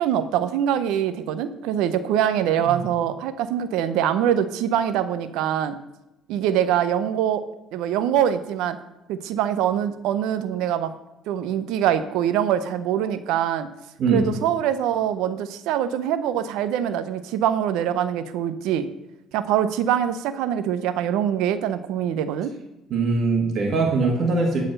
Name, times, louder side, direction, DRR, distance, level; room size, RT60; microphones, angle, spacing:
voice 1, 0.0-5.7 6.3-7.5 7.7-8.8 9.1-10.9 11.3-13.7 14.1-18.9 19.3-22.5, right 10 dB, 85° right, 12 dB, 0.6 m, -24 dB
voice 2, 22.9-24.6, right 3 dB, 55° right, 0 dB, 1.7 m, -21 dB
12.0 x 4.2 x 6.5 m, 0.96 s
cardioid pair, 120°, 0 cm